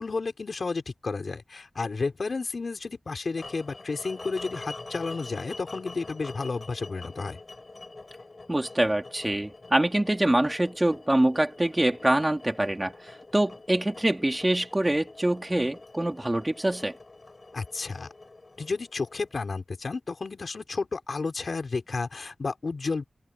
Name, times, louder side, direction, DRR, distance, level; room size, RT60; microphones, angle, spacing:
voice 1, 0.0-7.4 17.5-18.1 18.6-23.0, left 4 dB, 60° left, 5.5 m, -32 dB
sound 1, 3.4-19.5, left 3 dB, 45° left, 6.3 m, -45 dB
voice 2, 8.5-16.9, right 1 dB, 20° right, 3.7 m, -25 dB
open air
wide cardioid pair, 80°, 0 cm